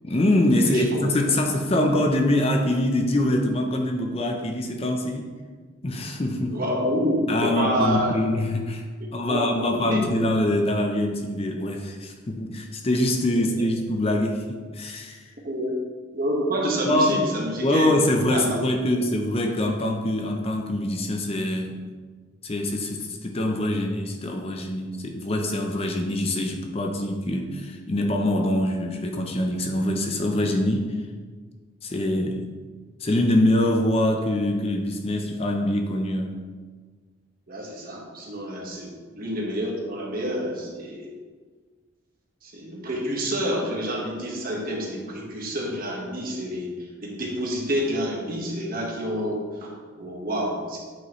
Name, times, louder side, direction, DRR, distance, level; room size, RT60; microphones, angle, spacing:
voice 1, 0.0-5.3 5.8-6.6 7.3-8.8 9.1-15.3 16.8-17.2 17.6-21.8 22.4-30.9 31.8-32.5 33.0-36.4 38.7-38.8, left 1 dB, 30° left, 3 dB, 0.6 m, -24 dB
voice 2, 0.7-1.1 6.5-8.2 9.3-10.0 13.3-13.4 15.4-15.8 16.1-17.9 18.3-18.6 18.9-19.0 37.5-41.1 42.4-46.7 47.0-50.8, equal, 45° right, -2 dB, 1.5 m, -28 dB
8.6 x 5.5 x 3.1 m, 1.5 s
head